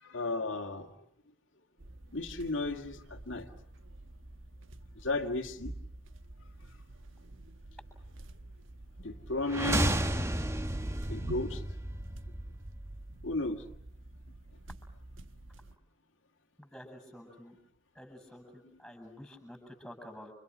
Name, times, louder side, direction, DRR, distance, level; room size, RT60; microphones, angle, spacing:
voice 1, 0.0-0.9 2.1-3.5 5.0-5.7 9.0-10.0 11.1-11.6 13.2-13.6, left 2 dB, 80° left, 4 dB, 2.1 m, -34 dB
sound 1, 1.8-15.8, right 1 dB, 80° right, 1.3 m, -49 dB
sound 2, 9.4-13.4, right 1 dB, 15° right, 1.3 m, -33 dB
voice 2, 16.6-17.6 17.9-20.3, equal, ahead, 6 dB, 7.8 m, -49 dB
29.5 x 28.5 x 6.2 m, 0.76 s
head